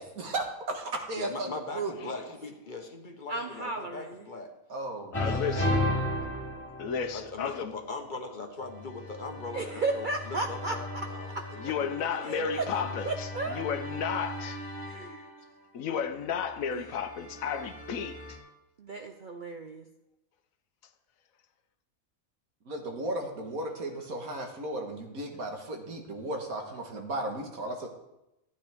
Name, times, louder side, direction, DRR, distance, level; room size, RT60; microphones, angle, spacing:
voice 1, 0.0-2.1 4.7-5.7 22.7-27.9, right 2 dB, 80° right, 2.0 m, -35 dB
voice 2, 1.1-4.5 5.2-5.4 7.1-11.3 11.6-12.5 12.8-12.9, left 3 dB, 40° left, 1.1 m, -40 dB
voice 3, 3.3-4.2 9.5-11.1 11.3-11.4 12.2-12.7 13.1-13.6 14.9-15.3 16.7-16.8 18.8-19.8, right 3 dB, 50° right, 0.6 m, -34 dB
voice 4, 5.1-5.8 6.8-7.7 11.6-14.6 15.7-18.4, left 7 dB, 75° left, 1.1 m, -33 dB
sound 1, 5.1-7.5 8.7-15.4 16.4-18.4, left 1 dB, 10° left, 3.4 m, -35 dB
14.5 x 9.3 x 3.6 m
omnidirectional pair, 1.5 m